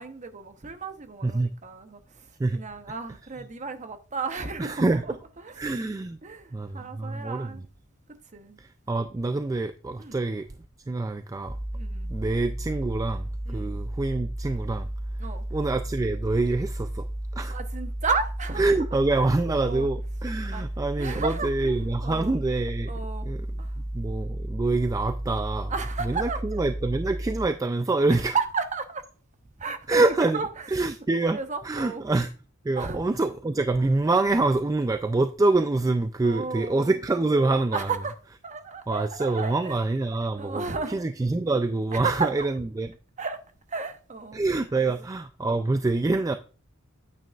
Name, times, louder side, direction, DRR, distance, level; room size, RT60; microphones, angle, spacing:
voice 1, 0.0-5.7 6.2-7.6 8.1-8.6 10.0-10.2 11.7-12.1 13.5-13.8 15.2-15.5 17.5-18.6 19.6-19.9 20.5-20.7 21.0-21.8 22.0-22.3 22.9-23.3 23.6-23.8 25.7-26.6 28.1-29.1 29.6-30.7 31.3-32.1 32.8-33.0 36.2-37.0 37.7-38.2 38.4-39.8 40.3-41.0 41.9-42.5 43.2-43.4 43.7-44.4 44.8-44.9 45.5-45.6, right 4 dB, 35° right, 0.9 m, -33 dB
voice 2, 4.6-5.0 5.6-6.2 6.5-7.5 8.6-10.5 10.9-11.6 12.1-14.9 15.5-17.1 17.3-17.6 18.6-22.9 23.3-23.5 23.9-25.7 26.0-28.4 29.9-31.4 31.6-32.3 32.6-37.9 38.9-42.9 44.3-46.4, right 2 dB, 15° right, 0.3 m, -26 dB
sound 1, 11.5-27.5, right 1 dB, 20° left, 4.9 m, -33 dB
9.0 x 8.9 x 2.4 m
head